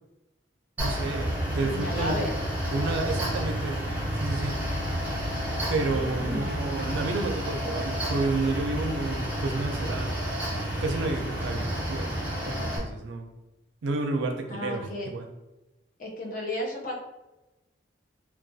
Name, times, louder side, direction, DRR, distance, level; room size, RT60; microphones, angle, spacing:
Mechanical fan, 0.8-12.8, equal, 10° right, 0.5 m, -30 dB
voice 1, 0.8-2.3 2.7-3.8 4.1-4.5 5.7-10.1 10.8-13.3 13.8-15.3, right 3 dB, 85° right, 4 dB, 0.4 m, -31 dB
voice 2, 1.6-2.4 6.2-6.5 14.5-15.1 16.0-16.9, left 1 dB, 45° left, -1 dB, 0.5 m, -33 dB
2.3 x 2.2 x 2.6 m, 1.0 s
head